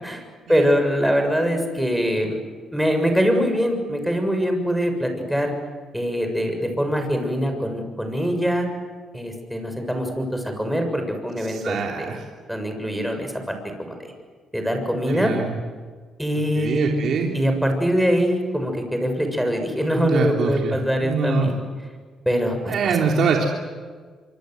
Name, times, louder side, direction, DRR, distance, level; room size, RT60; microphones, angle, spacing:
voice 1, 0.5-2.4 2.7-5.5 5.9-8.7 9.1-12.1 12.5-13.4 13.8-14.1 14.5-15.3 16.2-16.9 17.3-21.5 22.3-22.8, equal, ahead, 4 dB, 7.0 m, -23 dB
voice 2, 11.5-12.3 15.1-15.6 16.5-17.3 20.0-21.5 22.7-23.5, right 5 dB, 65° right, 0 dB, 3.3 m, -24 dB
26.5 x 24.5 x 8.0 m, 1.5 s
cardioid pair, 90°, 0 cm